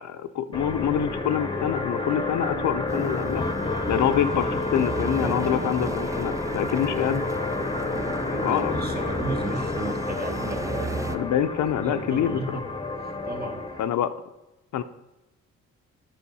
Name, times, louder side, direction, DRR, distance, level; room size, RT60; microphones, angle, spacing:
voice 1, 0.0-3.4 3.9-7.2 8.4-8.8 11.1-12.6 13.8-14.1 14.7-14.8, left 10 dB, 70° left, 10 dB, 0.7 m, -26 dB
sound 1, 0.5-13.9, left 2 dB, 15° left, 1.0 m, -30 dB
sound 2, 2.9-11.2, right 3 dB, 10° right, 0.5 m, -35 dB
voice 2, 6.5-7.2 8.0-11.3 11.8-13.8, right 3 dB, 30° right, 4 dB, 1.7 m, -36 dB
10.0 x 5.5 x 5.5 m, 0.98 s
cardioid pair, 90°, 30 cm